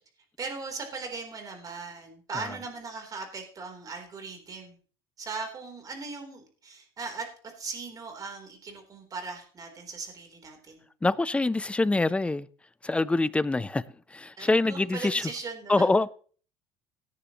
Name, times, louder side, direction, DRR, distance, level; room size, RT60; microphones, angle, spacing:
voice 1, 0.4-4.8 5.2-7.3 7.6-10.8 14.4-15.9, right 4 dB, 35° right, 3.7 m, -39 dB
voice 2, 11.0-12.5 12.8-13.8 14.1-15.3 15.7-16.1, left 2 dB, 10° left, 0.5 m, -25 dB
17.5 x 10.0 x 3.1 m
cardioid pair, 115°, 11 cm